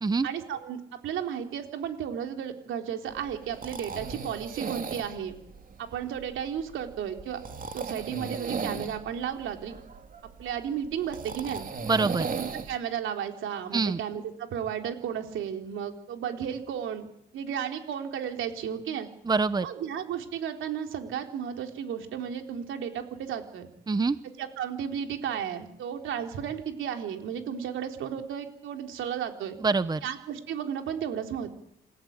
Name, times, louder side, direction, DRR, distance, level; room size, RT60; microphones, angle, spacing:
voice 1, 0.2-5.4 5.8-7.4 7.7-9.8 10.4-11.7 12.3-17.1 17.3-19.1 19.6-23.7 24.4-29.6 30.0-31.5, right 8 dB, 80° right, 4 dB, 3.6 m, -34 dB
sound 1, 3.1-12.8, right 5 dB, 45° right, 2.8 m, -37 dB
voice 2, 11.8-12.3 13.7-14.0 19.2-19.7 23.9-24.2 29.6-30.0, right 4 dB, 20° right, 14 dB, 0.9 m, -25 dB
27.5 x 15.0 x 8.9 m, 0.76 s
cardioid pair, 90°, 20 cm